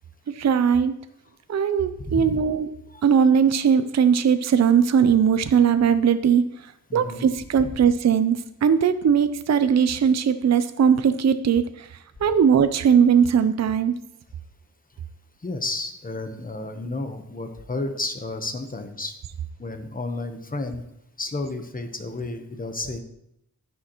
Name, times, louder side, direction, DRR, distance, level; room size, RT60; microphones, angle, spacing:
voice 1, 0.4-1.0 1.5-2.7 3.0-6.4 6.9-11.9 12.2-13.9, right 7 dB, 50° right, 11 dB, 0.5 m, -19 dB
voice 2, 2.0-2.4 2.9-3.0 6.9-7.3 7.6-7.7 15.4-19.2 19.6-20.8 21.2-23.0, left 2 dB, 25° left, 6 dB, 1.0 m, -32 dB
10.5 x 10.0 x 3.0 m, 0.81 s
wide cardioid pair, 155°, 35 cm